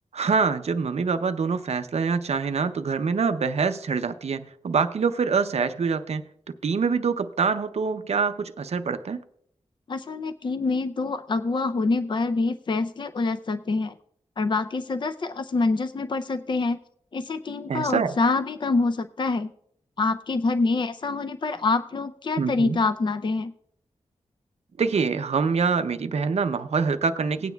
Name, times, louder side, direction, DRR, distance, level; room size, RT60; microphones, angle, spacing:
voice 1, 0.1-6.2 6.6-9.2 17.7-18.2 22.4-22.8 24.8-27.5, right 5 dB, 65° right, 10 dB, 0.5 m, -25 dB
voice 2, 9.9-13.9 14.4-16.8 17.1-19.5 20.0-23.5, left 3 dB, 40° left, 10 dB, 0.4 m, -26 dB
18.5 x 9.1 x 2.2 m, 0.68 s
wide cardioid pair, 75°, 12 cm